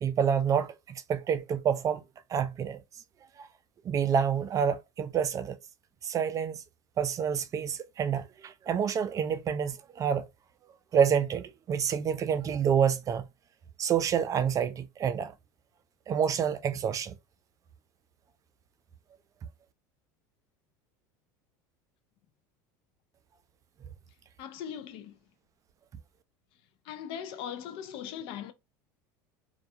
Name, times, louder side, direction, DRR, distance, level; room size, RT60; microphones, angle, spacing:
voice 1, 0.0-2.0 2.3-2.8 3.4-3.5 3.8-5.6 6.0-6.6 7.0-10.3 10.9-13.2 13.8-15.3 16.1-17.1, right 7 dB, 35° right, 0.3 m, -28 dB
voice 2, 24.4-25.2 26.8-28.5, left 9 dB, 60° left, 0.5 m, -39 dB
2.2 x 2.2 x 2.6 m
supercardioid pair, 100°, 10 cm